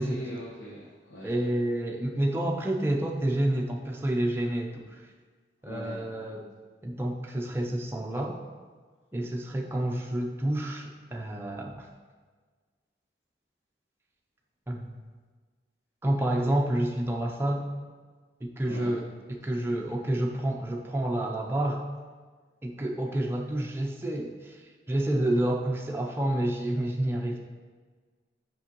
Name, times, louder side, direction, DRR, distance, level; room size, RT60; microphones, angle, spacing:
voice 1, 0.0-1.4 5.6-6.0 18.6-19.0, equal, 75° left, -7 dB, 1.2 m, -41 dB
voice 2, 1.2-5.1 5.6-6.5 6.8-8.4 9.1-11.9 14.7-14.9 16.0-17.6 18.4-19.0 19.4-21.8 22.6-27.4, right 1 dB, 15° right, -1 dB, 0.5 m, -29 dB
6.2 x 5.2 x 3.0 m, 1.5 s
head